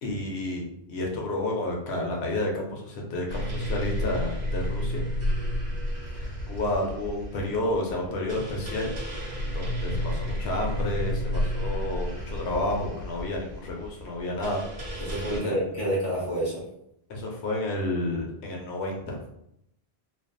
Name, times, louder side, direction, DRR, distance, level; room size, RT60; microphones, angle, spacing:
voice 1, 0.0-5.0 6.1-15.6 17.1-19.2, left 1 dB, 90° left, -1 dB, 0.9 m, -31 dB
sound 1, 3.3-15.4, equal, 65° right, 1.1 m, -31 dB
voice 2, 15.0-16.6, right 1 dB, 15° left, -8 dB, 1.0 m, -28 dB
2.4 x 2.2 x 2.5 m, 0.78 s
omnidirectional pair, 1.1 m